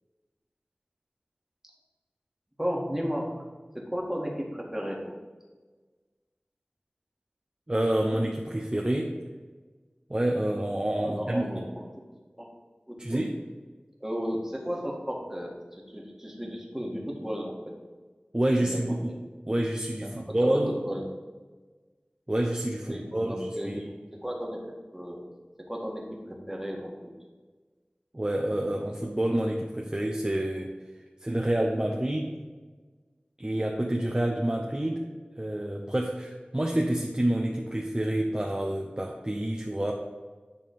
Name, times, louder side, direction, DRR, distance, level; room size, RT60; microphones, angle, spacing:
voice 1, 2.6-3.3 3.7-5.1 11.0-11.8 12.4-12.5 12.9-13.3 14.0-15.6 15.9-17.5 18.5-18.8 19.1-19.2 20.0-21.0 22.9-23.8 24.1-25.2 25.7-26.9, equal, 10° right, -2 dB, 1.6 m, -34 dB
voice 2, 7.7-9.1 10.1-11.5 13.0-13.3 18.3-19.1 19.5-20.8 22.3-23.8 28.1-30.7 31.2-32.4 33.4-35.0 35.4-39.9, right 1 dB, 25° right, 0 dB, 0.7 m, -28 dB
9.2 x 3.6 x 5.3 m, 1.4 s
wide cardioid pair, 50°, 3 cm